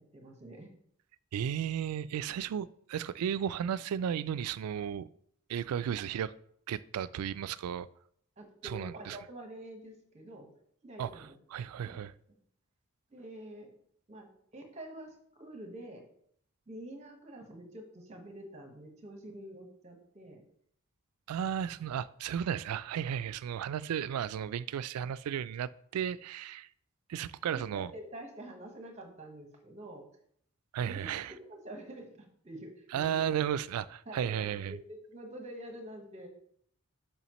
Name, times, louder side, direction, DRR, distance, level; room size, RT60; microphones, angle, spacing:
voice 1, 0.1-0.7 8.4-10.5 10.8-11.4 11.8-12.0 13.1-13.7 14.1-14.3 14.5-16.0 16.7-20.4 27.5-30.0 30.8-33.3 34.0-36.3, right 1 dB, 30° right, 1.3 m, -47 dB
voice 2, 1.3-5.1 5.5-6.3 6.7-7.9 8.6-9.2 11.0-11.1 11.5-12.1 21.3-26.7 27.1-27.9 30.7-31.3 32.9-34.7, right 9 dB, 85° right, 0.3 m, -34 dB
6.9 x 5.6 x 3.1 m
head